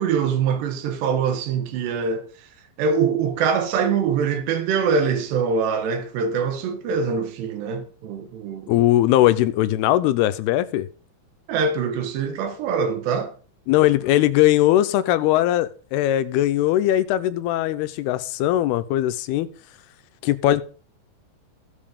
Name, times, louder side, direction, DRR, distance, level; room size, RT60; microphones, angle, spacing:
voice 1, 0.0-2.3 2.8-8.8 11.5-13.3, right 6 dB, 85° right, 3.5 m, -23 dB
voice 2, 8.7-10.9 13.7-19.5 20.2-20.6, left 14 dB, 80° left, 2.6 m, -20 dB
15.5 x 5.4 x 5.1 m
omnidirectional pair, 4.7 m